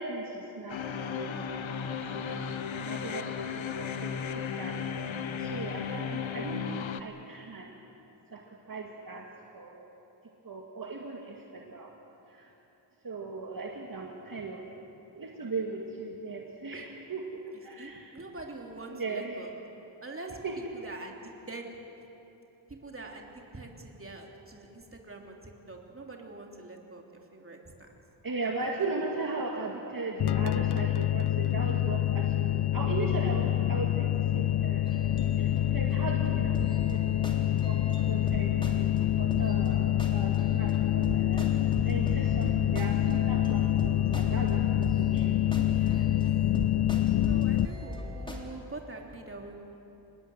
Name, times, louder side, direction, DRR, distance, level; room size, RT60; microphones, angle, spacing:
voice 1, 0.0-2.4 2.8-4.8 5.0-7.7 8.3-8.4 8.7-9.3 9.5-9.9 10.4-11.9 12.3-12.5 13.0-14.6 15.2-18.1 18.9-19.4 20.4-20.5 28.2-37.8 38.1-41.5 41.8-45.4, right 3 dB, 45° right, 0 dB, 2.2 m, -38 dB
sound 1, 0.7-7.0, left 7 dB, 80° left, 1.2 m, -35 dB
voice 2, 17.5-19.5 20.0-20.4 20.7-21.2 21.5-21.7 22.7-27.6 28.6-28.7 45.5-46.1 47.2-49.6, right 2 dB, 30° right, 1 dB, 3.3 m, -44 dB
sound 2, 30.2-47.7, left 13 dB, 60° left, 0.5 m, -26 dB
sound 3, 34.5-48.4, right 1 dB, 10° left, 3.4 m, -40 dB
26.5 x 20.0 x 8.0 m, 3.0 s
wide cardioid pair, 90°, 46 cm